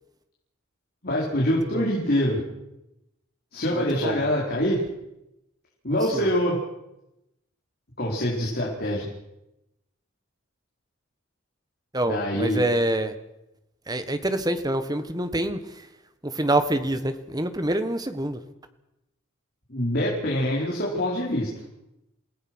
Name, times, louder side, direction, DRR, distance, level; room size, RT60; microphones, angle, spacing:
voice 1, 1.0-2.4 3.5-4.8 5.8-6.6 8.0-9.1 12.1-12.6 19.7-21.5, equal, 50° left, -3 dB, 4.7 m, -25 dB
voice 2, 3.7-4.3 6.1-6.3 11.9-13.1 13.9-15.6 16.2-18.4, right 1 dB, 20° right, 10 dB, 1.5 m, -26 dB
28.0 x 17.0 x 6.3 m, 0.89 s
head